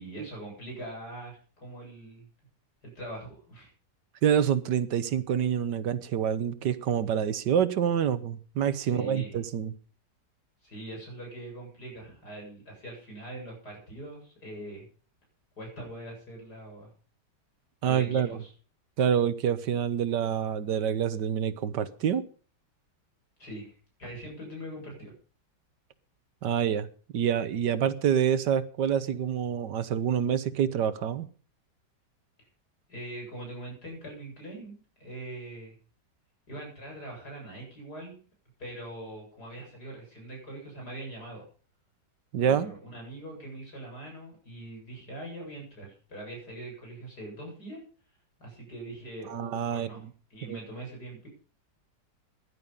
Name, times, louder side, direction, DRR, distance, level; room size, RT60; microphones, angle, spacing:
voice 1, 0.0-2.3 2.8-3.7 8.8-9.4 10.6-14.9 15.6-16.9 17.8-18.5 23.4-23.7 24.0-25.1 32.4-32.5 32.9-35.8 36.5-38.2 38.6-41.4 42.4-47.8 48.4-50.0 50.3-51.3, right 1 dB, 65° left, 0 dB, 8.6 m, -42 dB
voice 2, 4.2-9.7 17.8-18.4 19.0-22.2 26.4-26.9 27.1-31.3 42.3-42.7 49.3-49.9 50.5-50.6, right 8 dB, 75° right, 14 dB, 1.6 m, -27 dB
16.0 x 11.5 x 5.4 m, 0.40 s
omnidirectional pair, 1.9 m